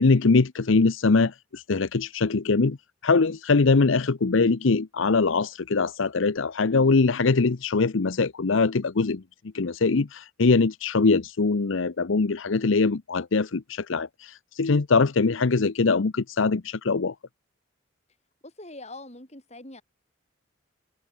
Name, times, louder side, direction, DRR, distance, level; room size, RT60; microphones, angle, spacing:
voice 1, 0.0-2.8 3.0-9.2 9.5-17.1, left 4 dB, 70° left, 0.7 m, -22 dB
voice 2, 18.4-19.8, left 2 dB, 30° left, 5.1 m, -43 dB
head